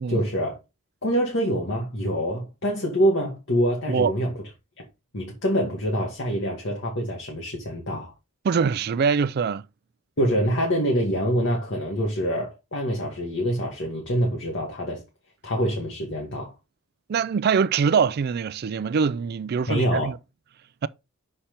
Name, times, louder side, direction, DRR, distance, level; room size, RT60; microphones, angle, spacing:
voice 1, 0.1-0.6 1.0-4.3 4.8-4.9 5.1-8.1 10.2-15.0 15.4-16.5 19.7-20.1, equal, 60° left, 1.6 m, -25 dB
voice 2, 8.4-9.6 17.1-20.2 20.8-20.9, right 6 dB, 45° right, 0.3 m, -23 dB
5.8 x 4.3 x 5.0 m
head